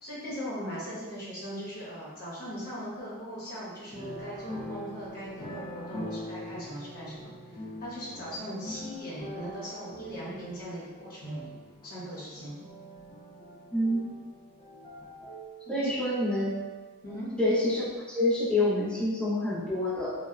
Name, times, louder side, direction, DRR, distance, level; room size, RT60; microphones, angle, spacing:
voice 1, 0.0-7.3 7.8-11.5 11.8-12.5 15.7-15.9 17.0-17.3, equal, 40° left, -9 dB, 1.0 m, -39 dB
sound 1, 3.9-17.5 17.9-18.0, equal, 25° left, 0.4 m, -43 dB
voice 2, 13.7-14.1 15.7-16.5 17.4-20.1, left 1 dB, 5° left, -11 dB, 0.8 m, -27 dB
2.7 x 2.1 x 2.4 m, 1.2 s
head